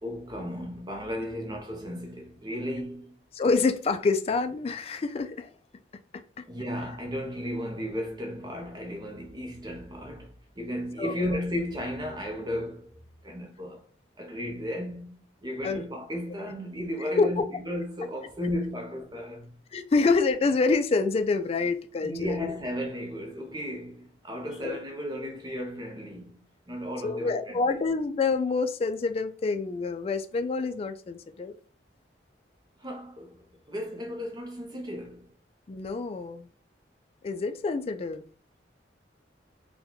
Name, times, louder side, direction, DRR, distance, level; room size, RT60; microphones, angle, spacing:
voice 1, 0.0-3.2 6.5-13.8 14.2-19.6 22.0-27.6 32.8-35.3, equal, 25° right, 0.6 m, -35 dB
voice 2, 3.3-5.5 6.4-6.5 11.0-11.3 15.6-15.8 17.2-17.4 19.7-22.5 24.6-24.8 27.0-31.5 35.7-36.5 37.2-38.3, left 4 dB, 35° left, 0.3 m, -27 dB
3.8 x 2.2 x 2.9 m
head